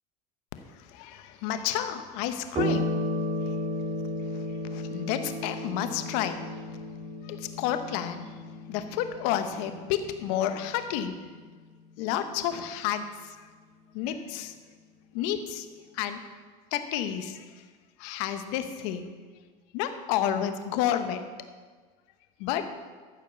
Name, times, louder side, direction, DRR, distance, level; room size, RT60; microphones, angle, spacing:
voice 1, 0.7-3.0 3.4-3.6 4.3-6.4 7.2-8.3 8.7-11.2 12.0-13.5 13.9-14.5 15.1-15.7 15.9-16.2 16.7-17.6 18.0-19.1 19.7-21.2 22.4-22.6, left 10 dB, 75° left, 8 dB, 1.0 m, -31 dB
sound 1, 2.5-11.4, left 1 dB, 35° right, 1.9 m, -34 dB
13.5 x 5.2 x 6.8 m, 1.5 s
supercardioid pair, 95°, 21 cm